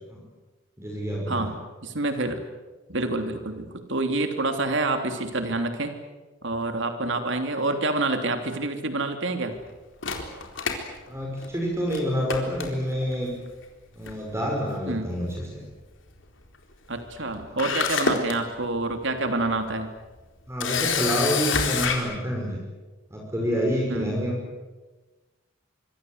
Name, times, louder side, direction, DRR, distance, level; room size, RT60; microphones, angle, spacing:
voice 1, 0.8-1.5 11.1-13.3 14.0-15.6 20.5-22.6 23.1-24.4, equal, 15° right, -1 dB, 5.7 m, -28 dB
voice 2, 1.8-2.4 2.9-5.9 6.4-9.5 14.9-15.1 16.9-19.9 23.9-24.2, right 2 dB, 70° right, 6 dB, 3.2 m, -27 dB
Camera, 10.0-11.6 11.9-12.0 12.3-13.1 14.1-14.3 14.6-14.7 17.2-17.3 17.6-18.3 18.9-19.0 20.6-22.0, left 5 dB, 70° left, 4.1 m, -26 dB
25.0 x 25.0 x 8.1 m, 1.2 s
head